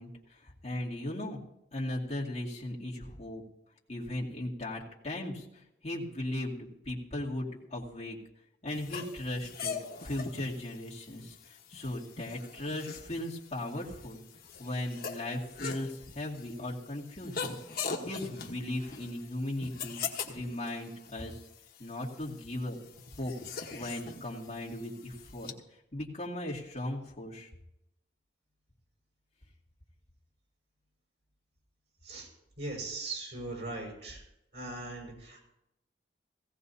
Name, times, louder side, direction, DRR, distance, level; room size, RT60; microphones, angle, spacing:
voice 1, 0.0-1.4 1.7-3.4 3.9-8.2 8.6-14.2 14.6-17.6 18.1-20.0 20.3-21.4 21.8-22.8 23.1-23.3 23.7-25.5 25.9-27.5, left 1 dB, 40° left, -6 dB, 2.4 m, -37 dB
sound 1, 8.7-25.5, left 5 dB, 55° left, 1.3 m, -42 dB
voice 2, 32.6-34.2 34.5-35.4, right 2 dB, 75° right, -1 dB, 5.8 m, -39 dB
17.5 x 16.5 x 2.8 m, 0.83 s
head